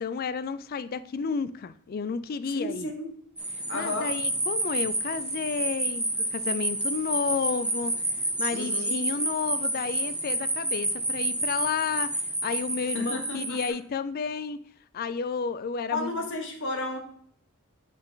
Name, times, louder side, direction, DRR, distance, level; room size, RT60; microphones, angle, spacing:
voice 1, 0.0-2.9 3.7-7.9 8.4-14.6 14.9-16.1, left 5 dB, 45° left, 14 dB, 0.3 m, -31 dB
voice 2, 2.5-3.1 3.7-4.1 8.5-9.0 12.9-13.6 15.9-17.0, left 2 dB, 60° left, 2 dB, 1.4 m, -32 dB
sound 1, 3.4-13.7, right 2 dB, 5° right, 1.1 m, -29 dB
8.6 x 4.1 x 3.9 m, 0.62 s
head